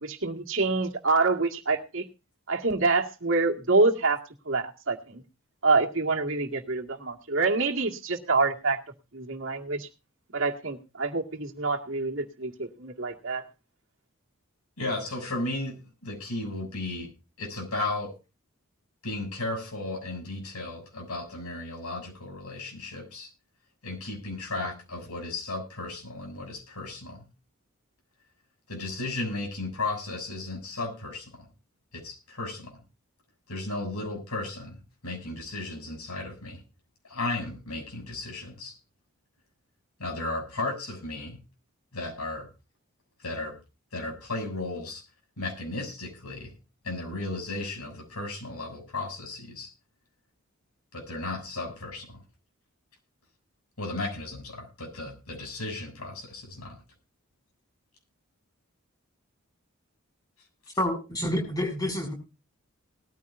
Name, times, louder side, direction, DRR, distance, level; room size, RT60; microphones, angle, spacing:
voice 1, 0.0-2.0 2.5-4.2 4.5-5.2 5.6-8.8 9.1-9.9 10.3-13.4, right 3 dB, 60° right, 2 dB, 2.1 m, -26 dB
voice 2, 14.8-17.1 17.4-18.1 19.0-23.3 23.8-27.2 28.7-31.5 31.9-32.8 33.5-34.8 35.0-36.6 37.0-38.7 40.0-41.4 41.9-42.5 43.2-43.5 43.9-45.0 45.4-46.5 46.8-49.7 50.9-52.2 53.8-56.8, left 2 dB, 90° left, 3 dB, 7.4 m, -35 dB
voice 3, 60.8-62.1, left 1 dB, 15° left, 2 dB, 6.8 m, -28 dB
20.0 x 14.0 x 2.6 m, 0.30 s
head